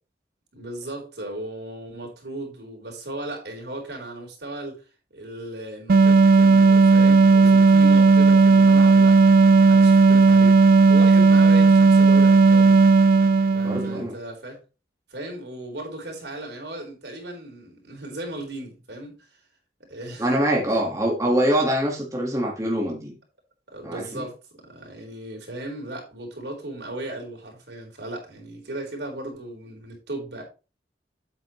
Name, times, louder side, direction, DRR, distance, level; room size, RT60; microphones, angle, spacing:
voice 1, 0.5-4.8 5.1-10.5 10.9-12.7 13.5-14.6 15.1-19.3 19.8-20.3 20.7-20.8 23.7-30.4, right 1 dB, 70° right, 4.3 m, -36 dB
sound 1, 5.9-14.0, right 4 dB, 55° right, 0.4 m, -14 dB
voice 2, 13.6-14.2 20.2-23.2 23.8-24.3, right 1 dB, 20° right, 1.8 m, -24 dB
8.8 x 8.6 x 3.2 m
head